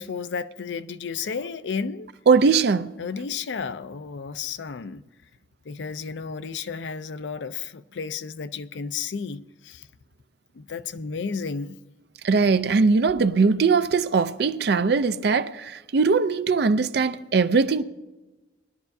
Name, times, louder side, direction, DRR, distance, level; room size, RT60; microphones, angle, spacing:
voice 1, 0.0-2.1 3.0-5.0 5.7-9.9 10.5-11.8, left 5 dB, 80° left, 0.5 m, -32 dB
voice 2, 2.3-2.9 12.2-17.8, right 4 dB, 60° right, 0.5 m, -20 dB
20.0 x 11.5 x 2.7 m
head